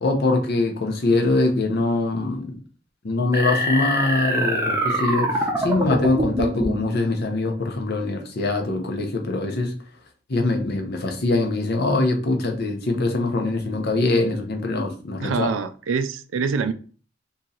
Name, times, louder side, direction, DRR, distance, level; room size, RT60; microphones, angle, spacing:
voice 1, 0.0-2.6 3.0-9.7 10.3-15.5, left 2 dB, 55° left, 0.8 m, -23 dB
sound 1, 3.3-6.9, right 1 dB, 15° right, 0.7 m, -24 dB
voice 2, 15.2-16.7, right 5 dB, 90° right, 0.4 m, -25 dB
3.0 x 2.7 x 3.8 m
head